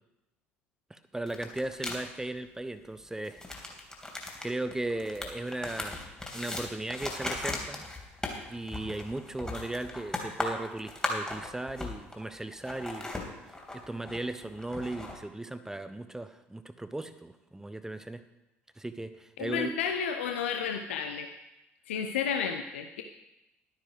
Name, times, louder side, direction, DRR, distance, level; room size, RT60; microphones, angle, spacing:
voice 1, 0.9-3.4 4.4-7.8 8.5-13.1 13.7-18.2 18.8-19.7, right 2 dB, 10° right, 11 dB, 1.0 m, -37 dB
sound 1, 1.3-2.0 3.2-12.3 12.5-15.2, left 2 dB, 10° left, 3.0 m, -37 dB
voice 2, 19.4-21.3 21.9-23.0, left 7 dB, 75° left, 6 dB, 0.7 m, -32 dB
12.0 x 9.9 x 4.9 m, 0.95 s
figure-of-eight pair, 55°, 7 cm